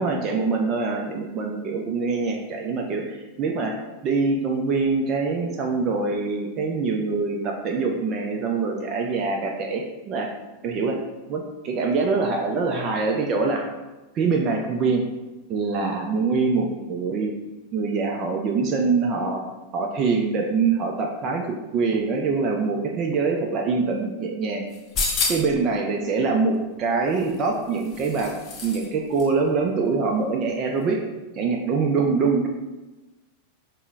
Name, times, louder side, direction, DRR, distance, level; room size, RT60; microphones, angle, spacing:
voice 1, 0.0-3.8 4.0-10.3 10.6-11.0 11.3-13.6 14.1-15.0 15.5-17.3 17.7-19.4 19.7-24.7 25.0-28.3 28.6-31.0 31.3-32.5, right 4 dB, 35° right, 2 dB, 0.4 m, -24 dB
sound 1, 24.7-25.6 27.1-28.9 29.2-29.3, left 4 dB, 30° left, 0.6 m, -29 dB
5.4 x 2.0 x 2.4 m, 1.1 s
figure-of-eight pair, 90°, 0 cm